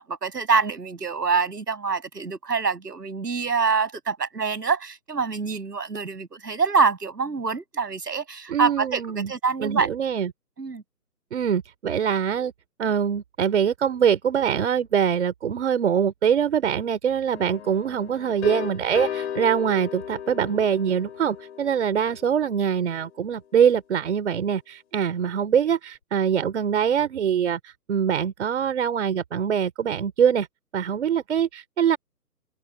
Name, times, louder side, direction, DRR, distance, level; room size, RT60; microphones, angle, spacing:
voice 1, 0.0-9.9 10.6-10.8, right 5 dB, 70° right, 6.7 m, -25 dB
voice 2, 8.5-9.3 9.6-10.3 11.3-12.5 12.8-30.5 30.7-32.0, right 8 dB, 40° right, 3.3 m, -23 dB
sound 1, 17.3-23.0, left 9 dB, 45° left, 7.4 m, -35 dB
open air
figure-of-eight pair, 155°, 50 cm